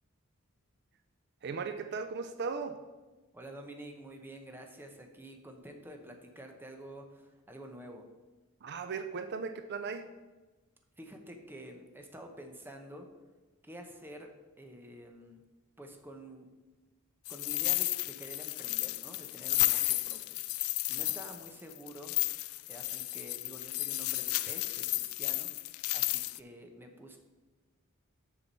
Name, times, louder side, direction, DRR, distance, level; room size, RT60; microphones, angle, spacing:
voice 1, 1.4-2.8 8.6-10.1, right 5 dB, 55° right, 9 dB, 0.5 m, -37 dB
voice 2, 3.3-8.1 11.0-13.1 13.6-14.3 14.6-15.4 15.8-16.5 17.3-20.4 20.9-22.1 22.7-25.5 25.9-27.2, right 1 dB, 10° right, 4 dB, 0.9 m, -48 dB
sound 1, 17.3-26.4, left 19 dB, 90° left, 0.3 m, -33 dB
7.1 x 5.9 x 5.3 m, 1.2 s
head